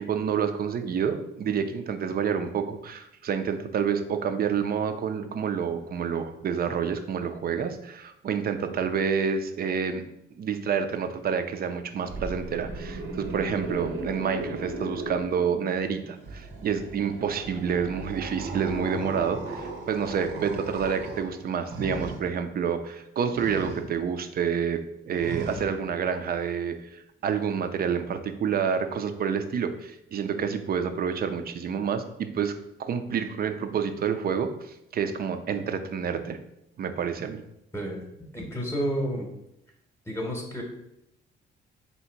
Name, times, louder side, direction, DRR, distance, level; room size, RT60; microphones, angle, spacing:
voice 1, 0.0-10.0 10.4-36.4 36.8-37.4, right 7 dB, 50° right, 8 dB, 0.5 m, -28 dB
sound 1, 12.1-15.8 16.2-22.2 23.3-23.9 25.2-25.7, right 2 dB, 85° right, 1.0 m, -36 dB
voice 2, 37.7-39.3 40.0-40.6, equal, 15° left, 0 dB, 0.9 m, -31 dB
3.4 x 2.8 x 4.4 m, 0.83 s
cardioid pair, 90°, 20 cm